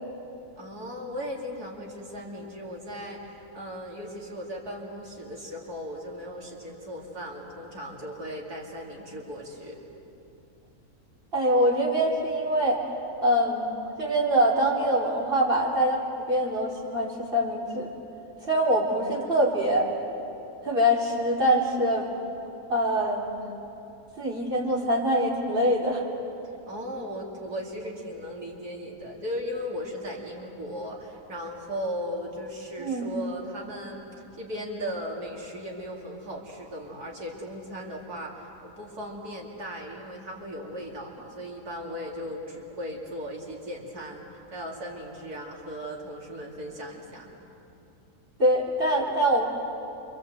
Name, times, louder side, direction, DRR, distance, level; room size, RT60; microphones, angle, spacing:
voice 1, 0.6-9.8 26.7-34.0 34.4-47.3, equal, 90° right, -2 dB, 3.4 m, -37 dB
voice 2, 11.3-12.8 13.2-17.9 18.4-19.9 20.6-22.1 22.7-23.3 24.2-26.0 32.8-33.1 48.4-49.5, equal, 35° right, -3 dB, 4.1 m, -24 dB
28.0 x 25.5 x 8.0 m, 2.8 s
omnidirectional pair, 1.6 m